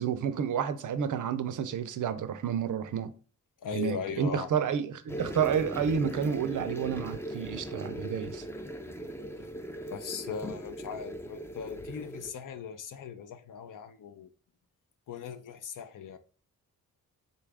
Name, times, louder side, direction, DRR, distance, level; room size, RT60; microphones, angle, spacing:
voice 1, 0.0-3.1 3.7-8.5, right 7 dB, 60° right, 0.5 m, -30 dB
voice 2, 3.6-4.5 9.0-9.5 9.9-14.3 15.1-16.2, left 7 dB, 65° left, 0.5 m, -39 dB
sound 1, 5.1-12.3, equal, 10° left, 0.4 m, -39 dB
3.9 x 2.4 x 3.3 m
wide cardioid pair, 110°, 35 cm